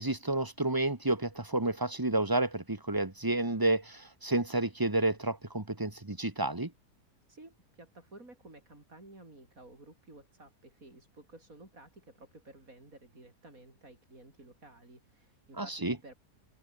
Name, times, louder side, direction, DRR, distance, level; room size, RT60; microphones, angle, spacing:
voice 1, 0.0-6.7 15.6-16.0, right 2 dB, 15° right, 1.8 m, -30 dB
voice 2, 7.3-16.1, right 2 dB, 55° right, 6.6 m, -54 dB
open air
omnidirectional pair, 1.7 m